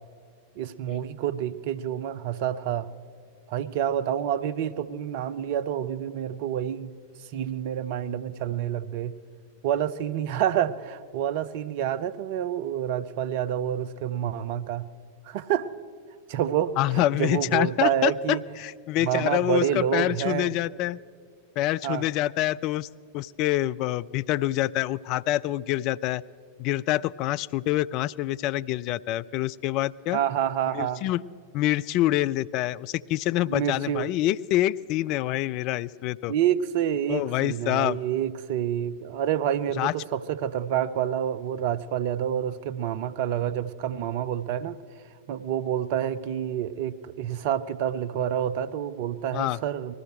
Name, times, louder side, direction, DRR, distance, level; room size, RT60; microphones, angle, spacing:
voice 1, 0.6-2.9 3.5-6.9 7.3-9.1 9.6-14.9 15.3-15.7 16.3-18.4 19.0-20.5 21.8-22.0 30.1-31.0 33.5-34.1 36.3-44.8 45.3-49.9, right 10 dB, 50° right, 15 dB, 0.6 m, -28 dB
voice 2, 16.8-21.0 21.6-22.9 23.1-26.2 26.6-30.2 30.7-31.2 31.5-36.3 37.1-38.0 39.8-39.9 49.3-49.6, left 15 dB, 40° left, 16 dB, 0.3 m, -26 dB
19.5 x 14.0 x 4.4 m, 2.2 s
figure-of-eight pair, 90°, 0 cm